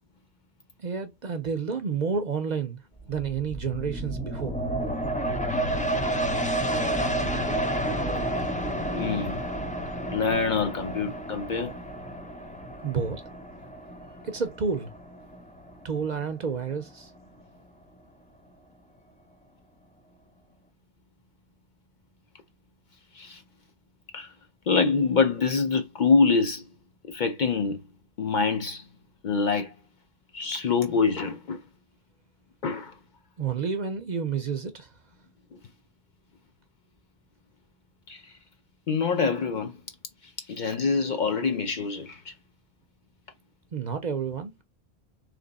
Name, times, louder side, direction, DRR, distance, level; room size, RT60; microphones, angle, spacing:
voice 1, 0.8-2.8 3.1-4.5 12.8-13.2 14.2-14.9 15.8-17.1 33.4-34.9 43.7-44.5, right 6 dB, 50° right, 0.6 m, -30 dB
sound 1, 3.0-16.3 16.7-16.8, right 1 dB, 10° left, 0.4 m, -30 dB
voice 2, 8.9-9.4 10.1-11.8 23.1-23.4 24.1-24.3 24.7-26.6 27.0-27.8 28.2-28.8 29.2-29.7 30.3-31.6 32.6-32.9 38.1-38.2 38.9-39.7 40.5-42.3, left 4 dB, 55° left, 0.7 m, -25 dB
3.4 x 2.9 x 4.0 m
omnidirectional pair, 1.1 m